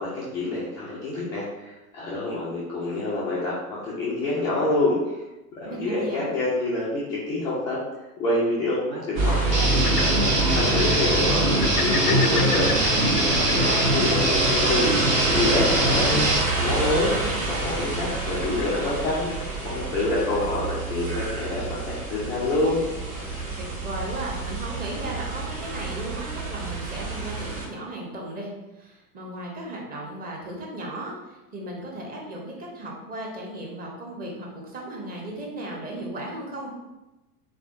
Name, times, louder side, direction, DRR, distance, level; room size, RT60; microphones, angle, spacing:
voice 1, 0.0-5.0 5.6-7.8 8.2-12.7 13.3-13.7 13.9-16.3 16.6-17.2 17.5-22.9, left 2 dB, 10° left, -9 dB, 0.3 m, -27 dB
voice 2, 5.6-6.3 13.4-13.8 23.6-28.5 28.7-36.7, right 1 dB, 20° right, -2 dB, 0.9 m, -36 dB
sound 1, 9.1-27.7, right 2 dB, 60° right, 1.3 m, -28 dB
sound 2, 9.3-23.6, left 6 dB, 75° left, 0.5 m, -38 dB
Guitar, 9.5-16.4, right 1 dB, 90° right, 0.8 m, -23 dB
3.6 x 3.5 x 2.4 m, 1.0 s
figure-of-eight pair, 85°, 47 cm